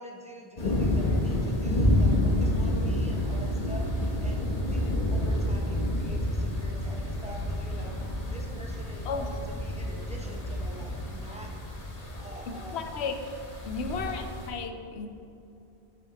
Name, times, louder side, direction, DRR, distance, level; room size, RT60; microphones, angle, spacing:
voice 1, 0.0-4.4 4.7-11.5 12.2-12.8 13.8-14.3, equal, 5° right, -2 dB, 0.7 m, -45 dB
sound 1, 0.6-14.5, left 1 dB, 40° left, 1.1 m, -29 dB
voice 2, 12.5-13.2 13.7-15.1, left 5 dB, 80° left, 6 dB, 0.9 m, -34 dB
7.8 x 5.8 x 2.9 m, 2.8 s
omnidirectional pair, 1.1 m